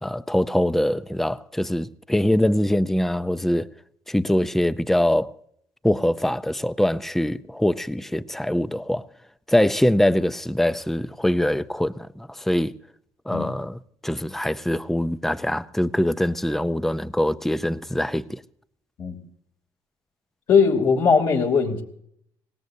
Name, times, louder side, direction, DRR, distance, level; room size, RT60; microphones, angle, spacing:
voice 1, 0.0-3.7 4.1-5.3 5.8-9.0 9.5-12.7 13.3-18.4, left 1 dB, 5° left, 0.6 m, -23 dB
voice 2, 20.5-21.8, left 5 dB, 60° left, 3.0 m, -19 dB
24.5 x 18.5 x 2.7 m
supercardioid pair, 85°, 10 cm